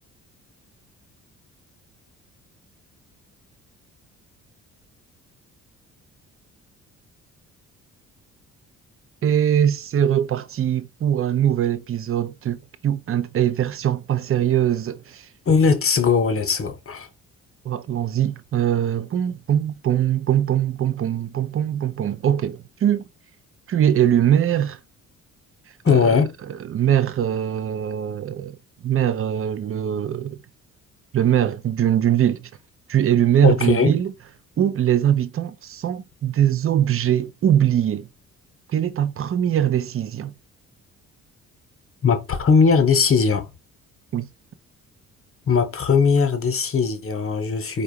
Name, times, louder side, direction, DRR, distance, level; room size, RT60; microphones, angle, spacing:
voice 1, 9.2-15.3 17.6-23.0 23.7-24.8 25.9-26.2 26.5-28.6 28.8-30.4 31.1-32.5 32.9-34.1 34.6-38.1 38.7-40.3 44.1-44.3, right 10 dB, 30° right, 0.7 m, -22 dB
voice 2, 15.4-17.1 25.8-26.3 33.4-33.9 42.0-43.5 45.5-47.8, left 5 dB, 30° left, 1.2 m, -19 dB
4.6 x 2.3 x 4.8 m
figure-of-eight pair, 45°, 42 cm